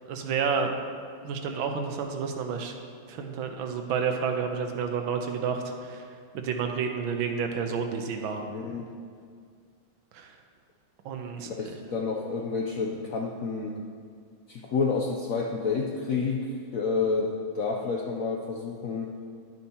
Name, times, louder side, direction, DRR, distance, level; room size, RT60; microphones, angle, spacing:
voice 1, 0.1-0.7 1.2-2.7 3.1-6.1 6.3-8.5 10.1-10.4 11.1-11.8, right 6 dB, 85° right, 4 dB, 1.6 m, -30 dB
voice 2, 8.5-8.9 11.5-13.8 14.5-19.1, left 4 dB, 75° left, 0 dB, 0.7 m, -29 dB
11.0 x 8.8 x 2.8 m, 2.1 s
omnidirectional pair, 2.2 m